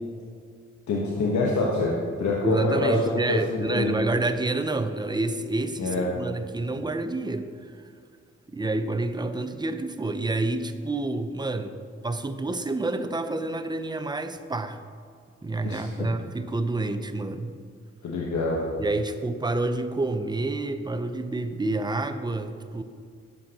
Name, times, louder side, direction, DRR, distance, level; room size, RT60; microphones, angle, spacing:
voice 1, 0.9-3.0 3.3-3.9 5.8-6.1 15.6-16.1 18.0-18.7, left 3 dB, 75° left, -3 dB, 1.2 m, -26 dB
voice 2, 2.4-7.5 8.5-14.8 15.4-17.6 18.8-22.8, right 2 dB, 15° right, 9 dB, 0.7 m, -28 dB
11.5 x 7.6 x 2.9 m, 2.2 s
cardioid pair, 65°, 29 cm